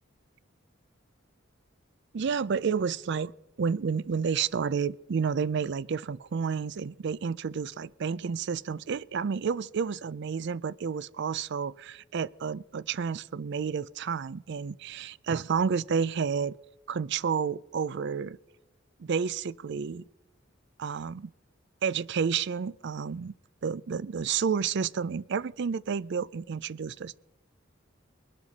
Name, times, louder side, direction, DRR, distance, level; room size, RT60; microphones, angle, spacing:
voice 1, 2.1-3.3 3.6-16.6 16.9-18.4 19.0-20.0 20.8-21.3 21.8-23.3 23.6-27.2, right 6 dB, 60° right, 0.4 m, -30 dB
21.5 x 12.0 x 4.1 m
head